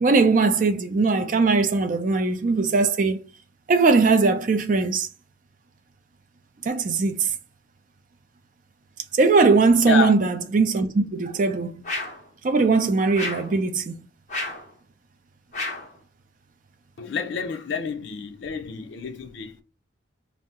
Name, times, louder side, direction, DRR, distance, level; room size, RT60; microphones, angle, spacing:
voice 1, 0.0-3.2 3.7-5.1 6.6-7.3 9.2-11.7 12.4-14.0, right 4 dB, 40° right, 0.4 m, -20 dB
sound 1, 11.8-12.3 13.1-13.6 14.3-14.7 15.5-15.9, left 2 dB, 40° left, 0.9 m, -31 dB
voice 2, 17.0-19.6, left 5 dB, 70° left, 0.4 m, -29 dB
2.7 x 2.1 x 3.5 m
head